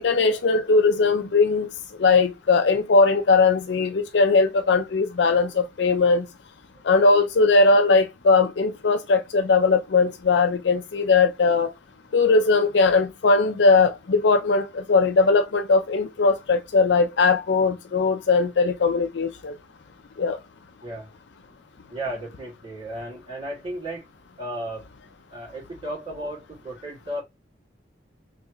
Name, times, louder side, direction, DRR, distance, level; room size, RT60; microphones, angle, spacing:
voice 1, 0.0-1.7 2.0-6.3 6.8-11.7 12.1-19.6 20.2-20.4, left 4 dB, 80° left, 0.5 m, -19 dB
voice 2, 21.9-24.0 24.4-24.9 25.3-27.2, right 1 dB, 35° right, 2.3 m, -34 dB
3.5 x 3.3 x 3.0 m
head